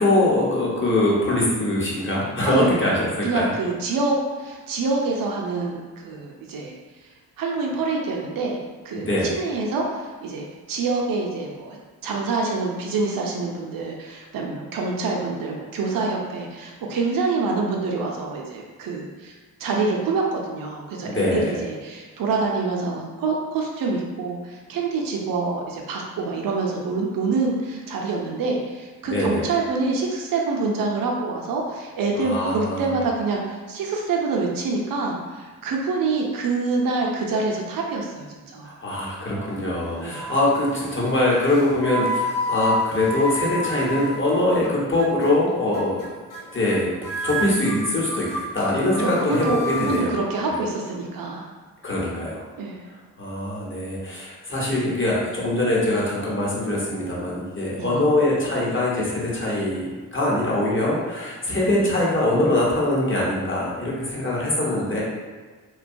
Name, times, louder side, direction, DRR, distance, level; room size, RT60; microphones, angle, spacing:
voice 1, 0.0-3.5 8.9-9.3 21.0-21.5 29.0-29.5 32.1-32.9 38.8-46.0 46.5-50.1 51.8-52.4 53.2-65.0, left 1 dB, 30° left, -5 dB, 1.0 m, -23 dB
voice 2, 2.4-6.7 7.4-8.6 8.8-19.3 19.6-38.7 40.0-40.3 49.0-51.5 52.6-52.8 57.8-58.0 64.6-64.9, right 3 dB, 60° right, -1 dB, 0.6 m, -26 dB
sound 1, 39.2-39.7 40.1-40.6 41.4-44.7 45.0-45.3 45.7-46.1 46.3-46.4 46.7-46.8 47.0-50.0, equal, 55° left, 0.7 m, -29 dB
2.7 x 2.2 x 2.6 m, 1.4 s
cardioid pair, 55°, 38 cm